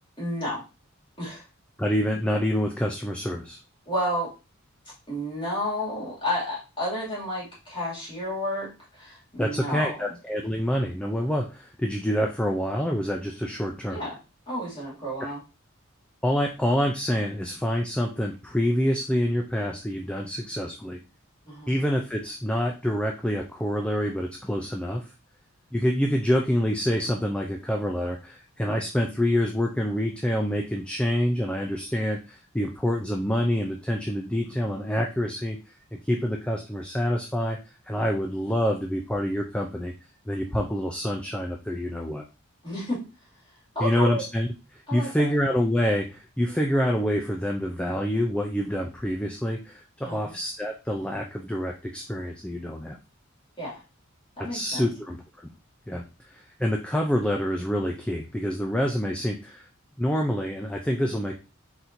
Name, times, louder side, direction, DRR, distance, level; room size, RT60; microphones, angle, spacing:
voice 1, 0.2-0.6 1.2-1.4 3.9-4.3 5.1-10.1 13.9-14.2 14.5-15.4 21.5-21.7 42.6-43.0 43.7-44.2 44.9-45.4 50.0-50.4 53.6-53.8 54.4-54.9, equal, 25° left, -6 dB, 2.3 m, -31 dB
voice 2, 1.8-3.6 9.4-14.0 15.2-15.3 16.2-21.0 21.7-25.1 25.7-35.6 35.9-37.6 37.9-39.9 40.3-42.2 43.8-53.0 54.5-55.5 55.9-59.7 60.0-61.3, equal, 5° left, 1 dB, 0.4 m, -27 dB
4.4 x 4.0 x 2.6 m, 0.30 s
head